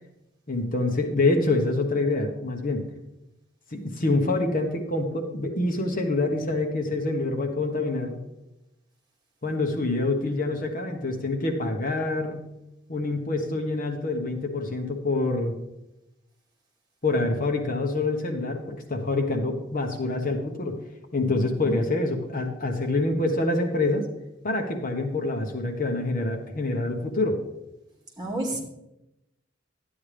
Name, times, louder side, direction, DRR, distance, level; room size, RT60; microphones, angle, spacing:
voice 1, 0.5-2.8 3.7-8.2 9.4-12.4 12.9-15.5 17.0-20.8 21.1-24.1 24.4-27.4, left 2 dB, 45° left, 3 dB, 1.2 m, -26 dB
voice 2, 21.2-21.8 28.2-28.6, right 1 dB, 20° right, -2 dB, 2.3 m, -32 dB
12.5 x 9.3 x 3.4 m, 0.90 s
head